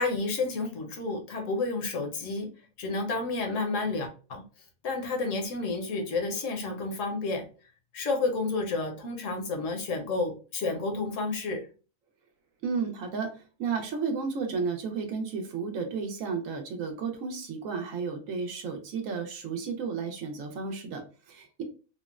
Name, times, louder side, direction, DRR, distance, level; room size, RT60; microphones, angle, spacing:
voice 1, 0.0-2.5 2.8-4.4 4.8-7.4 7.9-11.6, left 3 dB, 70° left, 3 dB, 1.0 m, -30 dB
voice 2, 12.6-21.6, right 5 dB, 70° right, 4 dB, 1.0 m, -33 dB
3.6 x 2.0 x 2.3 m, 0.35 s
omnidirectional pair, 1.4 m